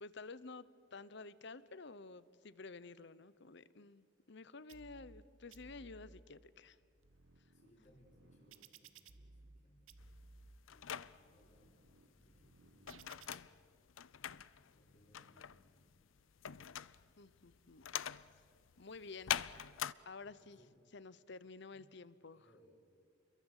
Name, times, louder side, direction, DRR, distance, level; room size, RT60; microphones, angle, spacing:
voice 1, 0.0-6.8 17.2-17.8 18.3-18.4 18.8-19.4 20.0-20.6 20.9-22.4, left 3 dB, 60° left, 17 dB, 0.9 m, -52 dB
sound 1, 4.7-5.2 5.5-6.2 6.8-9.6 9.9-10.6 11.2-13.4, right 4 dB, 85° right, 1.3 m, -60 dB
voice 2, 7.5-9.9 10.7-13.5 14.2-15.9 20.2-20.8 21.7-21.9 22.3-22.7, equal, 40° left, -2 dB, 5.0 m, -69 dB
sound 2, 10.0-19.9, left 10 dB, 80° left, 0.6 m, -44 dB
29.5 x 22.5 x 8.2 m, 2.3 s
head